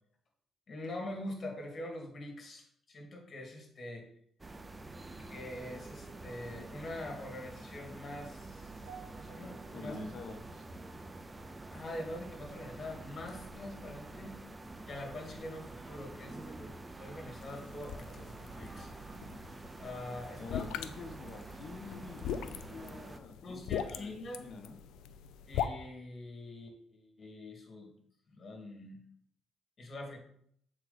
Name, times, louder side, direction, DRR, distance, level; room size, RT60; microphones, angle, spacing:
voice 1, 0.7-4.1 5.2-8.8 9.1-10.0 11.7-14.4 14.9-18.9 19.8-20.8 23.4-24.5 25.5-27.9 28.3-29.0 29.8-30.2, left 1 dB, 45° left, 1 dB, 2.2 m, -44 dB
sound 1, 4.4-23.2, right 2 dB, 20° right, 0.6 m, -48 dB
sound 2, 8.9-13.2 13.5-13.9 14.5-14.6, right 7 dB, 85° right, 2.5 m, -58 dB
voice 2, 9.7-10.6 20.4-24.8, left 3 dB, 60° left, 5 dB, 1.2 m, -47 dB
sound 3, 17.4-25.7, left 9 dB, 90° left, 0.4 m, -41 dB
7.6 x 4.4 x 4.0 m, 0.68 s
cardioid pair, 90°, 0 cm